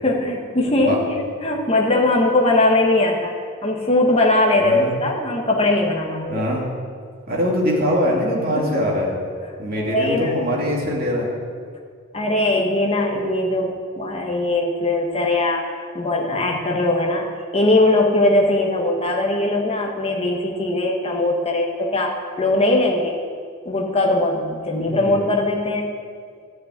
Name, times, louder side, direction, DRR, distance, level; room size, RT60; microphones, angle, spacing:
voice 1, 0.0-3.3 3.6-6.4 8.6-8.8 9.8-10.3 12.1-23.2 23.6-25.9, left 2 dB, 25° left, 0 dB, 1.3 m, -20 dB
voice 2, 4.6-5.0 6.3-6.7 7.3-9.1 9.6-11.3 24.8-25.2, equal, 45° right, -2 dB, 2.5 m, -22 dB
12.5 x 6.3 x 9.2 m, 2.1 s
head